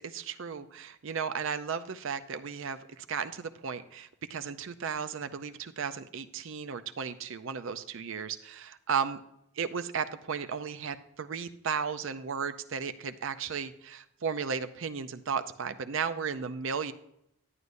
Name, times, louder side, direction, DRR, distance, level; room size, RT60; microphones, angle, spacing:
voice 1, 0.0-9.2 9.6-16.9, right 6 dB, 60° right, 10 dB, 0.5 m, -35 dB
11.0 x 9.5 x 2.6 m, 0.76 s
head